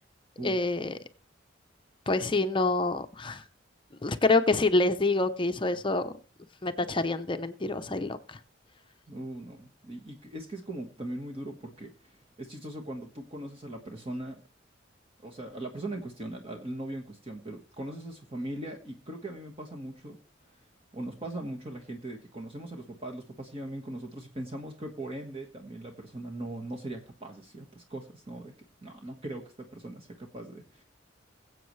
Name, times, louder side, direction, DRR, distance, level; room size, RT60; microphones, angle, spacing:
voice 1, 0.4-0.9 2.1-3.4 4.0-6.1 6.6-8.4, left 2 dB, 25° left, 9 dB, 0.6 m, -27 dB
voice 2, 9.1-14.4 15.2-20.2 20.5-20.6 20.9-28.5 28.8-30.8, right 1 dB, 30° right, 2 dB, 1.4 m, -40 dB
21.5 x 7.9 x 3.2 m, 0.38 s
head